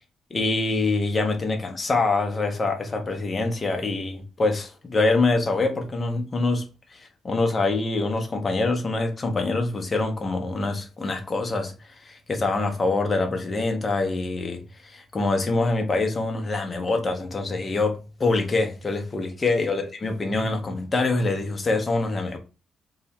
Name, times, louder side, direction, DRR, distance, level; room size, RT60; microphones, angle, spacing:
voice 1, 0.3-6.6 6.9-7.0 7.2-11.7 12.0-14.6 14.9-22.4, left 3 dB, 20° left, 0.5 m, -25 dB
2.7 x 2.1 x 2.8 m
cardioid pair, 180°, 0 cm